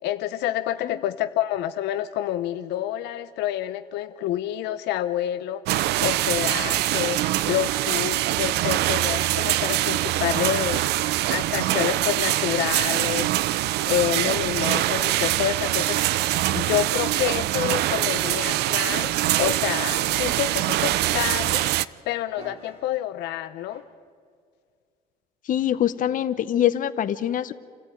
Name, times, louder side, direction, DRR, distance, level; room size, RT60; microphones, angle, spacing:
voice 1, 0.0-7.2 7.5-13.6 13.8-19.1 19.4-23.8, left 12 dB, 85° left, 10 dB, 0.8 m, -28 dB
sound 1, 5.7-21.8, right 15 dB, 80° right, 0.6 m, -24 dB
sound 2, 18.2-18.6 19.5-20.0 21.0-21.6 22.4-22.9 23.7-23.9, right 2 dB, 40° right, 4.6 m, -44 dB
voice 2, 25.5-27.5, left 11 dB, 50° left, 11 dB, 1.0 m, -24 dB
28.0 x 14.5 x 9.2 m, 2.1 s
cardioid pair, 110°, 17 cm